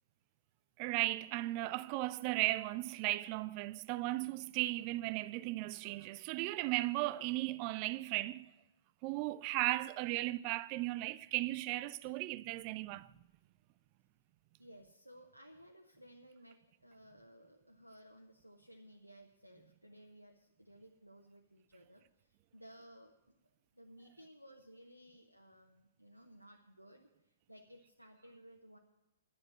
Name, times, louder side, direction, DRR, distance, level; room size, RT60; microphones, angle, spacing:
voice 1, 0.8-8.5 9.0-13.1, right 18 dB, 30° right, 0.4 m, -36 dB
voice 2, 14.6-23.4 23.7-28.8, equal, 90° right, 1.0 m, -58 dB
11.0 x 7.9 x 8.5 m
figure-of-eight pair, 120°, 0 cm